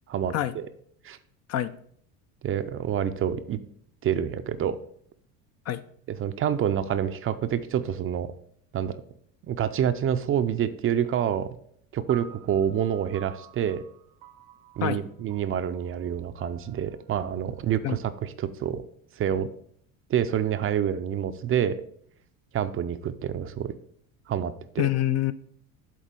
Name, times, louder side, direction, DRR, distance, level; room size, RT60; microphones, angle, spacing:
voice 1, 0.1-0.7 1.0-1.2 2.4-3.6 4.0-4.8 6.2-8.3 8.7-9.0 9.4-11.5 11.9-13.8 14.8-18.8 19.2-19.5 20.1-21.8 22.5-23.7 24.3-24.8, right 9 dB, 35° right, 11 dB, 0.5 m, -27 dB
sound 1, 12.1-18.5, right 10 dB, 85° right, 1.0 m, -50 dB
voice 2, 24.8-25.3, left 13 dB, 40° left, 13 dB, 0.4 m, -25 dB
7.4 x 4.0 x 5.2 m, 0.64 s
supercardioid pair, 105°, 40 cm